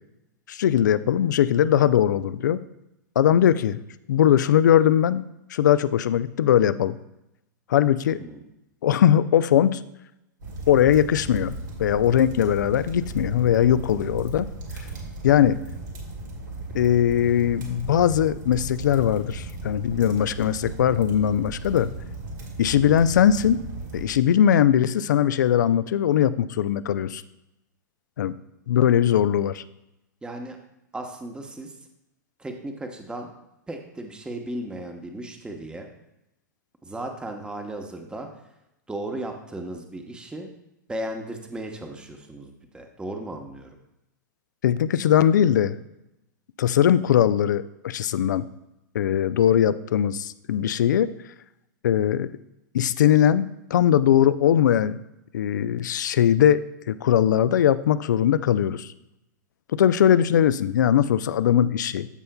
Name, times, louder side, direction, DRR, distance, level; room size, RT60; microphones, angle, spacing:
voice 1, 0.5-2.6 3.2-3.8 4.1-5.2 5.5-7.0 7.7-8.2 8.8-9.8 10.7-14.5 15.2-15.6 16.7-21.9 22.6-23.6 23.9-27.2 28.2-28.4 28.7-29.6 44.6-45.8 46.6-48.5 48.9-51.1 51.8-52.3 52.7-55.0 55.3-58.9 59.7-62.1, left 10 dB, 70° left, 15 dB, 0.4 m, -20 dB
sound 1, 10.4-24.1, right 2 dB, 75° right, 2.0 m, -36 dB
voice 2, 30.2-30.6 30.9-31.8 32.4-33.3 33.7-35.9 36.8-38.4 38.9-40.5 40.9-43.7, right 1 dB, 10° right, 4 dB, 0.9 m, -35 dB
14.0 x 5.5 x 2.2 m, 0.87 s
figure-of-eight pair, 100°, 10 cm